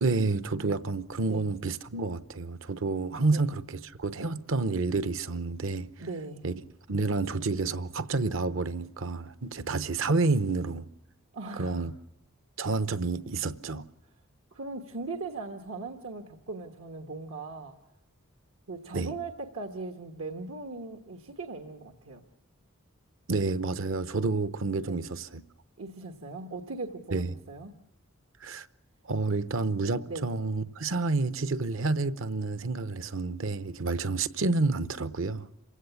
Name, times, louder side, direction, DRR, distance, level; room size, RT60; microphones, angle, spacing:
voice 1, 0.0-5.9 6.4-6.5 6.9-10.9 11.6-11.9 12.6-13.9 18.9-19.2 23.3-25.4 27.1-27.3 28.4-28.7 29.1-35.5, right 3 dB, 65° right, 0.8 m, -29 dB
voice 2, 6.0-6.4 11.3-11.9 14.5-17.7 18.7-22.2 24.8-25.0 25.8-27.7 30.1-30.3, right 3 dB, 85° right, 1.3 m, -39 dB
27.5 x 16.5 x 7.0 m
head